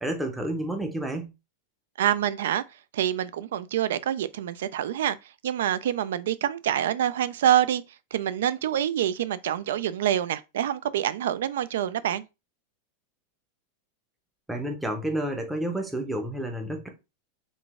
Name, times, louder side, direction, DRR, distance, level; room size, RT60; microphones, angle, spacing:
voice 1, 0.0-1.3 14.5-16.9, right 1 dB, 5° right, 0.5 m, -30 dB
voice 2, 2.0-2.6 2.9-5.2 5.4-7.8 8.1-12.2, right 11 dB, 85° right, 0.3 m, -26 dB
3.8 x 2.4 x 3.5 m
supercardioid pair, 175°, 0 cm